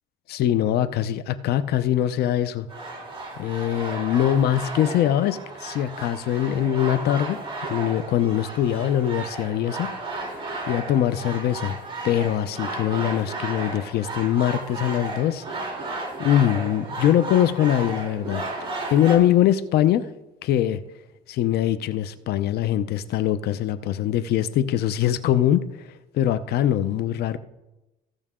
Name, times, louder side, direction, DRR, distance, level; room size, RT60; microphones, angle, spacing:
voice 1, 0.3-2.7 3.4-7.4 7.7-9.9 10.2-11.8 12.0-15.4 16.2-18.4 18.9-20.1 20.4-20.8 21.3-25.9 26.1-27.4, left 11 dB, 70° left, 13 dB, 0.7 m, -22 dB
sound 1, 2.7-19.2, right 2 dB, 30° right, 3.1 m, -34 dB
16.0 x 6.5 x 3.7 m, 0.97 s
cardioid pair, 110°, 17 cm